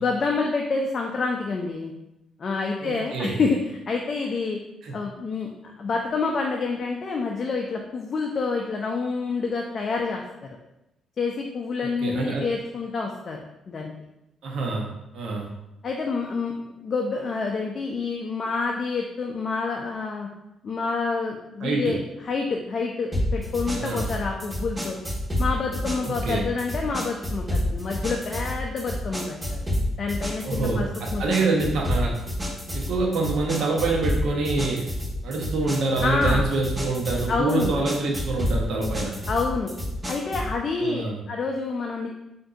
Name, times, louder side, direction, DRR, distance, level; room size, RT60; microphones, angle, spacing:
voice 1, 0.0-1.9 2.4-3.6 3.9-4.6 4.9-5.5 5.8-10.2 10.5-10.6 11.2-13.9 15.8-20.3 20.6-22.0 22.2-25.0 25.4-29.6 30.0-31.5 36.0-36.5 37.3-37.8 39.3-39.7 40.1-41.0 41.3-42.1, left 4 dB, 45° left, 1 dB, 0.3 m, -28 dB
voice 2, 2.8-3.4 4.8-5.0 11.8-12.5 14.4-15.5 21.6-22.0 23.7-24.1 26.0-26.4 30.4-32.2 32.7-34.9 35.2-39.2 40.8-41.2, right 3 dB, 75° right, -1 dB, 0.5 m, -26 dB
sound 1, 23.1-40.6, left 1 dB, 30° right, 1.2 m, -29 dB
3.7 x 2.6 x 2.3 m, 0.90 s
cardioid pair, 90°, 0 cm